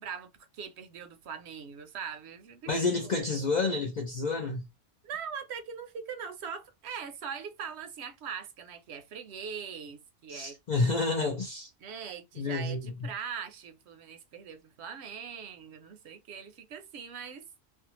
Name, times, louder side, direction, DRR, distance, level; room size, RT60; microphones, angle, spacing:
voice 1, 0.0-2.7 3.0-3.1 5.0-10.6 11.2-11.3 11.8-17.4, right 7 dB, 70° right, 0.8 m, -41 dB
voice 2, 2.7-4.6 10.3-11.7 12.4-13.1, left 3 dB, 55° left, 0.5 m, -29 dB
2.5 x 2.3 x 2.8 m
omnidirectional pair, 1.2 m